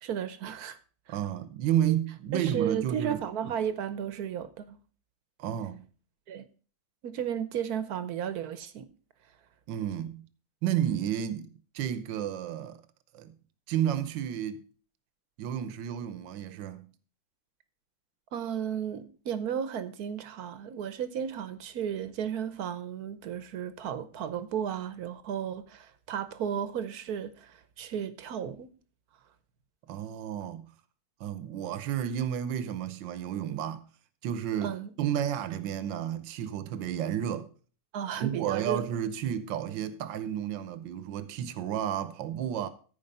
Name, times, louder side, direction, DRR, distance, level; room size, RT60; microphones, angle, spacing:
voice 1, 0.0-0.8 1.1-1.2 2.3-4.8 6.3-6.4 7.0-8.9 18.3-28.7 34.6-34.9 37.9-38.8, right 8 dB, 60° right, 1.2 m, -34 dB
voice 2, 1.1-3.2 5.4-5.9 9.7-10.2 10.6-12.8 13.1-13.3 13.7-14.6 15.4-16.9 29.9-30.7 31.2-33.8 34.2-37.5 38.2-42.7, right 10 dB, 80° right, 1.5 m, -31 dB
14.5 x 4.9 x 5.4 m
omnidirectional pair, 2.0 m